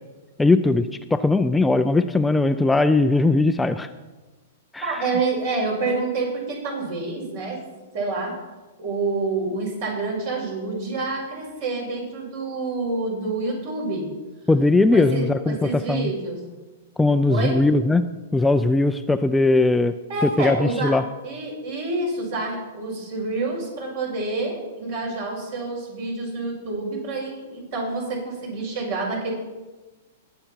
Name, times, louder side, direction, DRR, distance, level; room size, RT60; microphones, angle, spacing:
voice 1, 0.4-3.9 4.7-5.0 14.5-16.1 17.0-18.0 18.3-19.9 20.2-21.0, left 2 dB, 5° left, 9 dB, 0.4 m, -19 dB
voice 2, 4.8-7.6 7.9-8.4 8.8-14.1 14.9-16.4 17.3-17.6 20.1-20.9 21.2-29.3, right 3 dB, 55° right, -1 dB, 5.3 m, -28 dB
20.5 x 7.9 x 4.4 m, 1.2 s
figure-of-eight pair, 105°, 0 cm